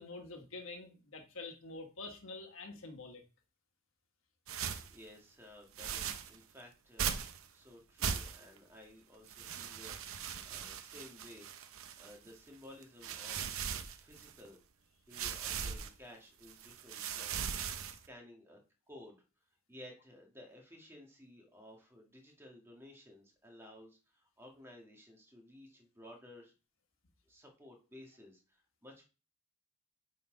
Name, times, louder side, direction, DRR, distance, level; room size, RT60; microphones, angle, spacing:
voice 1, 0.0-3.2, left 3 dB, 75° left, 4 dB, 1.4 m, -47 dB
sound 1, 4.5-5.0 5.8-6.4 7.0-7.4 8.0-8.6 9.3-12.3 12.8-14.5 15.1-15.9 16.4-18.1, right 7 dB, 80° right, 0.7 m, -39 dB
voice 2, 4.9-7.3 7.5-11.5 12.0-14.6 15.1-18.6 18.9-19.2 19.7-26.5 27.3-29.0, left 1 dB, 10° right, 1 dB, 1.7 m, -55 dB
9.5 x 4.2 x 3.8 m, 0.33 s
head